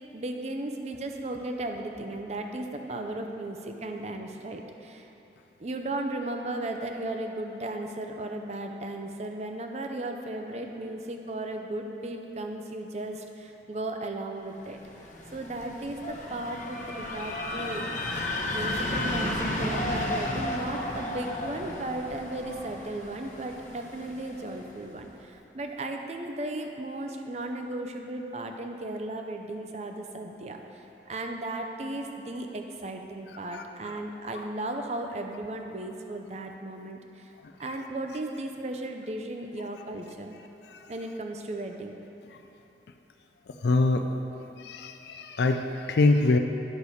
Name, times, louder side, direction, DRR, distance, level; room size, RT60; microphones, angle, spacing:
voice 1, 0.1-5.1 5.6-14.8 15.3-17.9 18.4-30.6 31.1-37.3 37.6-40.4 40.9-42.0, right 2 dB, 40° right, 4 dB, 0.5 m, -35 dB
sound 1, 14.7-24.6, left 1 dB, 45° left, 0.9 m, -33 dB
voice 2, 43.6-44.1 44.6-46.4, left 3 dB, 70° left, 5 dB, 0.4 m, -24 dB
9.9 x 6.4 x 4.1 m, 3.0 s
head